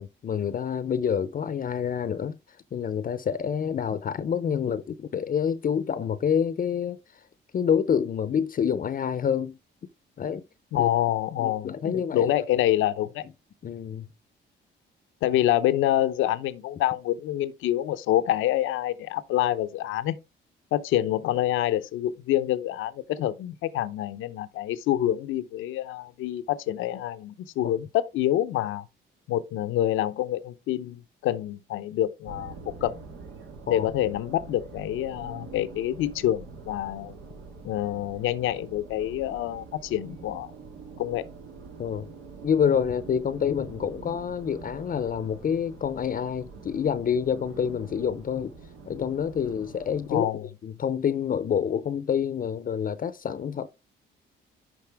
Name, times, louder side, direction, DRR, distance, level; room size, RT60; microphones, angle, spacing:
voice 1, 0.0-2.4 2.7-7.0 7.5-9.6 10.2-10.4 10.8-10.9 11.4-12.3 13.6-14.1 27.6-27.7 33.7-33.9 41.8-42.1 42.4-48.5 48.9-50.3 50.6-53.7, left 7 dB, 45° left, 0.6 m, -27 dB
voice 2, 10.7-13.2 15.2-20.2 20.7-28.8 29.3-33.0 33.7-37.2 37.6-40.5 41.0-41.3 50.1-50.5, left 13 dB, 90° left, 0.7 m, -27 dB
sound 1, 32.2-50.2, right 4 dB, 85° right, 2.0 m, -45 dB
11.0 x 4.2 x 3.5 m
cardioid pair, 90°, 20 cm